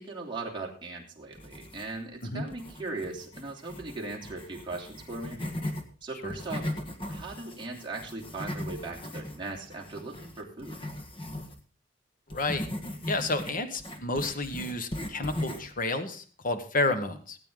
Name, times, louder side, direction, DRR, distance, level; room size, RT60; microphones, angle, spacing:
voice 1, 0.0-5.4 6.0-6.7 7.1-10.7, right 3 dB, 25° right, -2 dB, 3.2 m, -38 dB
sound 1, 1.3-2.1 2.5-5.8 6.2-11.6 12.3-15.8, left 1 dB, 30° left, 1.7 m, -38 dB
voice 2, 12.3-12.7 13.0-17.4, left 2 dB, 50° left, 8 dB, 1.3 m, -31 dB
17.5 x 9.0 x 3.8 m, 0.36 s
head